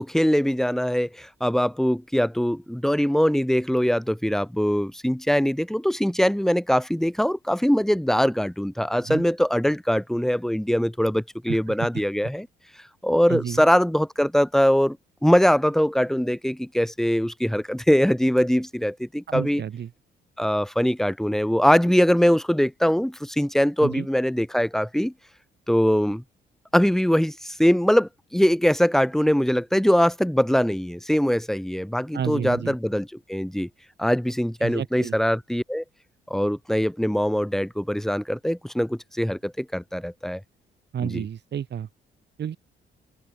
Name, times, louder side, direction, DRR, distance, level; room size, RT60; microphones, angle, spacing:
voice 1, 0.0-12.5 13.0-15.0 15.2-19.6 20.4-25.1 25.7-26.2 26.7-33.7 34.0-35.8 36.3-40.4 41.0-41.2, equal, ahead, 2.6 m, -22 dB
voice 2, 8.9-9.2 11.5-11.9 13.3-13.6 19.3-19.9 23.8-24.1 32.1-32.8 34.6-35.2 40.9-41.9 42.4-42.6, right 9 dB, 60° right, 7.1 m, -31 dB
cardioid pair, 90°, 20 cm